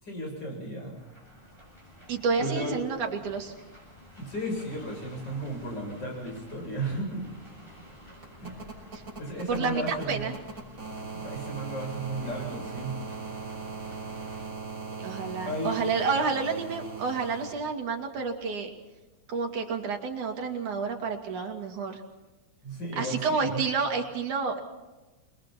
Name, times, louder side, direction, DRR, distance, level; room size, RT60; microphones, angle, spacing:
voice 1, 0.0-1.0 2.4-2.7 4.2-7.2 8.4-8.7 9.2-10.3 11.1-13.0 15.4-15.7 22.6-23.6, right 1 dB, 35° left, 0 dB, 8.6 m, -34 dB
sound 1, 0.9-14.5, equal, 10° left, 8.0 m, -51 dB
voice 2, 2.1-3.5 8.9-9.0 9.5-10.3 15.0-18.7 19.3-22.0 23.0-24.6, right 5 dB, 85° right, 2 dB, 4.1 m, -29 dB
sound 2, 7.1-17.5 19.0-19.1, right 4 dB, 25° right, 6.9 m, -40 dB
29.0 x 22.5 x 4.3 m, 1.2 s
omnidirectional pair, 3.4 m